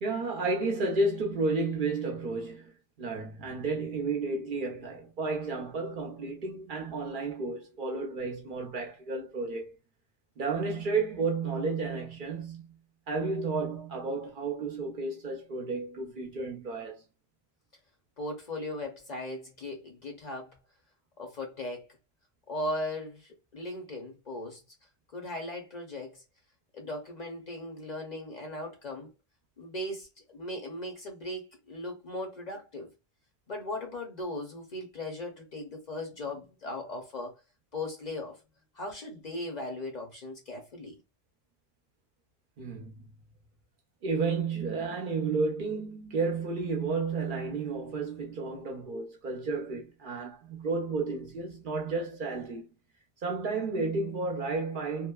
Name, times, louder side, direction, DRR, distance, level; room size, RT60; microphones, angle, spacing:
voice 1, 0.0-2.7 3.0-9.7 10.4-12.6 13.1-17.0 42.6-43.1 44.0-52.7 53.2-55.1, right 3 dB, 55° right, 0.7 m, -32 dB
voice 2, 18.2-20.6 21.2-21.9 22.5-24.6 25.1-26.2 26.7-29.1 29.6-32.9 33.5-37.4 37.7-38.4 38.7-41.0, left 1 dB, 45° left, 0.7 m, -38 dB
2.9 x 2.1 x 2.2 m
omnidirectional pair, 1.1 m